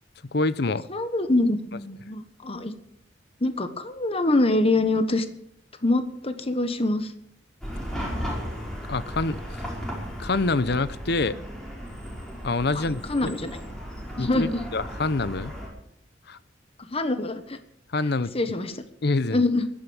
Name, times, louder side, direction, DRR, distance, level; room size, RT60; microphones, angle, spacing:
voice 1, 0.3-0.9 8.9-9.6 10.2-11.4 12.4-13.3 14.2-15.5 16.3-16.4 17.9-18.3 19.0-19.4, left 3 dB, 65° left, 16 dB, 0.8 m, -26 dB
voice 2, 0.9-2.8 3.4-5.3 5.8-7.1 13.1-13.5 14.2-14.6 16.9-17.6 18.3-18.7 19.3-19.6, left 2 dB, 35° left, 10 dB, 1.4 m, -24 dB
Chatter / Car passing by / Traffic noise roadway noise, 7.6-15.7, equal, 5° left, 5.1 m, -35 dB
15.0 x 11.5 x 7.2 m, 0.71 s
head